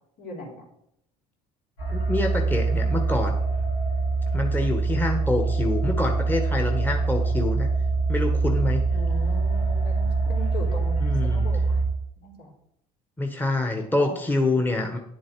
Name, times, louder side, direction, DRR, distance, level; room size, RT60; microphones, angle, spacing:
voice 1, 0.2-0.6 8.9-11.8 12.2-12.5 14.0-14.2, left 1 dB, 65° left, -1 dB, 4.0 m, -38 dB
sound 1, 1.8-11.8, right 3 dB, 85° left, 3.9 m, -24 dB
voice 2, 1.9-3.4 4.3-7.7 8.1-8.8 11.0-11.4 13.2-15.0, left 2 dB, 10° left, 4 dB, 1.5 m, -26 dB
10.0 x 7.4 x 4.8 m, 0.76 s
hypercardioid pair, 75°, 17 cm